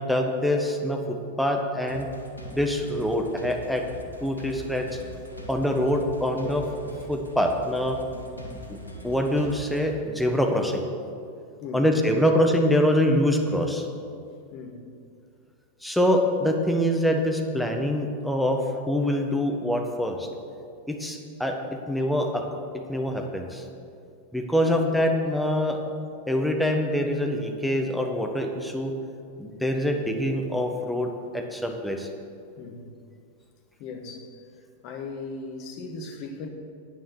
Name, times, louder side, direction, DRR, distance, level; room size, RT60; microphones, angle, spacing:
voice 1, 0.0-2.1 2.5-3.8 4.2-5.0 5.5-6.6 7.1-8.0 8.7-10.8 11.7-13.9 15.8-18.6 18.9-20.3 20.9-21.6 21.9-22.4 22.9-23.6 24.3-25.8 26.3-28.9 29.4-32.1, equal, ahead, 2 dB, 1.2 m, -25 dB
sound 1, 1.9-9.9, equal, 90° right, 1.3 m, -42 dB
voice 2, 14.5-14.8 32.6-32.8 33.8-34.3 34.8-36.5, left 4 dB, 40° left, 4 dB, 1.5 m, -37 dB
9.5 x 9.2 x 6.2 m, 2.4 s
figure-of-eight pair, 90°, 0 cm